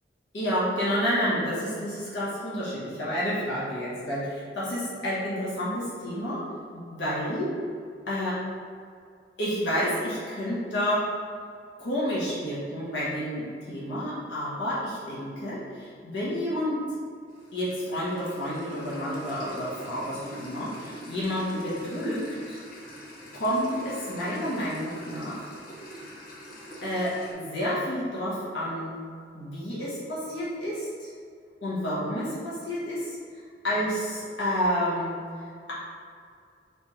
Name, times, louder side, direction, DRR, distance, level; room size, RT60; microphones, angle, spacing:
voice 1, 0.3-6.4 6.7-7.5 8.1-8.4 9.4-11.0 11.8-16.8 17.5-22.6 23.3-25.6 26.8-28.9 29.3-31.1 31.6-33.2 33.6-35.2, equal, 85° left, -8 dB, 1.3 m, -30 dB
sound 1, 17.3-27.3, equal, 55° left, 0.8 m, -43 dB
3.4 x 3.4 x 4.4 m, 2.2 s
head